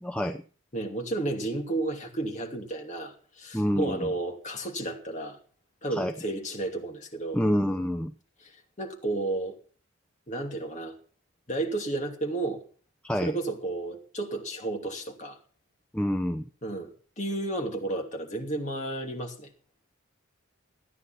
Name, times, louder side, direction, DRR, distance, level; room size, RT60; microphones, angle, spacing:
voice 1, 0.0-0.4 3.5-4.1 5.9-6.1 7.3-8.1 13.0-13.4 15.9-16.4, equal, 5° left, 0.5 m, -27 dB
voice 2, 0.7-5.4 5.8-7.4 8.4-9.6 10.3-11.0 11.5-12.6 13.2-15.4 16.6-16.9 17.2-19.5, right 2 dB, 35° left, 2.7 m, -32 dB
14.5 x 9.6 x 5.9 m
head